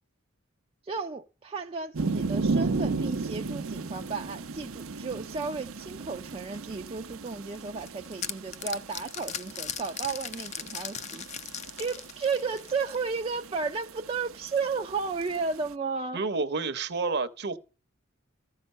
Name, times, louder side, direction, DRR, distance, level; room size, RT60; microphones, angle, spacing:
voice 1, 0.8-11.3 11.8-16.2, right 4 dB, 25° right, 0.4 m, -33 dB
sound 1, 1.9-15.7, right 3 dB, 80° right, 0.7 m, -35 dB
sound 2, 7.5-13.0, left 8 dB, 35° left, 0.5 m, -38 dB
voice 2, 16.1-17.6, right 4 dB, 50° right, 0.8 m, -29 dB
14.0 x 5.7 x 5.4 m
head